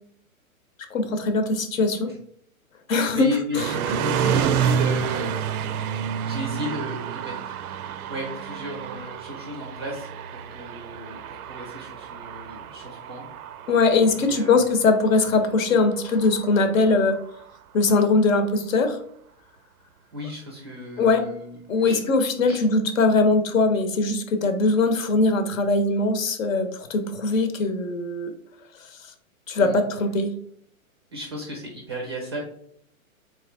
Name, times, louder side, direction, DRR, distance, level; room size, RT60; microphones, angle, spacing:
voice 1, 0.9-2.1 2.9-3.3 3.5-3.6 13.7-17.1 17.7-19.0 21.0-21.3 21.7-28.3 29.5-30.3, left 3 dB, 65° left, 7 dB, 0.9 m, -21 dB
voice 2, 3.1-7.5 8.1-13.3 14.1-14.5 20.1-22.0 22.4-22.6 29.6-29.8 31.1-32.4, equal, 20° right, 0 dB, 0.4 m, -34 dB
sound 1, 3.5-17.6, right 8 dB, 85° right, 0.5 m, -30 dB
3.7 x 3.0 x 3.4 m, 0.66 s
hypercardioid pair, 150°, 43 cm